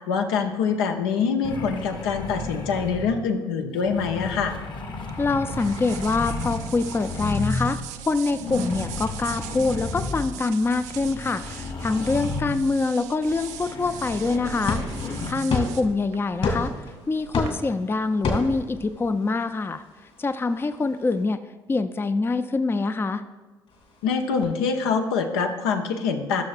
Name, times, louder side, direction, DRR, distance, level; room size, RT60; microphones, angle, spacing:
voice 1, 0.1-4.5 24.0-26.4, left 5 dB, 75° left, 5 dB, 0.7 m, -25 dB
sound 1, 1.4-3.3 3.8-7.8 8.3-12.8 13.2-15.3, left 3 dB, 35° left, 1.0 m, -33 dB
sound 2, 5.1-17.5, right 10 dB, 65° right, 0.4 m, -40 dB
voice 2, 5.2-7.8 8.0-14.8 15.3-16.7 17.1-19.8 20.2-21.4 21.7-23.2, left 3 dB, 20° left, 11 dB, 0.4 m, -25 dB
sound 3, 12.9-21.2 23.7-24.5, left 3 dB, 55° left, 2.3 m, -33 dB
14.5 x 6.4 x 2.4 m, 1.2 s
figure-of-eight pair, 50°, 13 cm